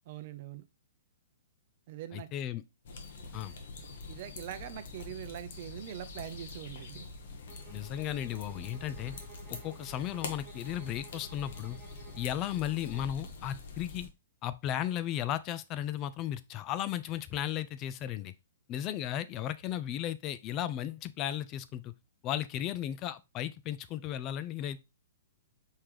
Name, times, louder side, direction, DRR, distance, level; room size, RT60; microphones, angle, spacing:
voice 1, 0.1-0.6 1.9-2.3 4.1-7.1, right 11 dB, 50° right, 0.5 m, -43 dB
voice 2, 2.1-2.6 3.3-3.5 7.7-9.2 9.5-11.8 12.2-14.1 14.4-18.3 18.7-21.9 22.2-24.8, left 11 dB, 30° left, 0.4 m, -35 dB
sound 1, 2.8-14.1, left 4 dB, 60° left, 1.1 m, -45 dB
sound 2, 7.5-13.2, right 9 dB, 25° right, 0.9 m, -55 dB
4.5 x 3.5 x 3.1 m
hypercardioid pair, 130°, 0 cm